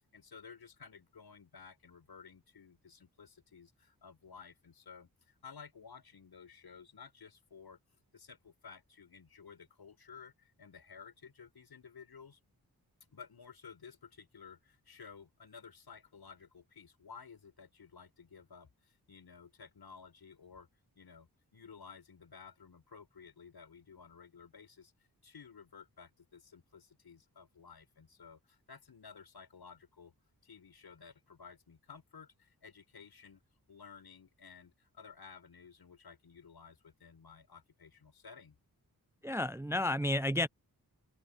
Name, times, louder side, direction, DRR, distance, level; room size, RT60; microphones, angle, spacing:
voice 1, 0.1-7.8 8.1-12.4 13.1-20.7 21.0-24.9 25.2-30.1 30.4-33.4 33.7-38.6, left 6 dB, 85° left, 7.8 m, -54 dB
voice 2, 39.2-40.5, left 1 dB, 10° right, 0.3 m, -31 dB
open air
wide cardioid pair, 130°, 37 cm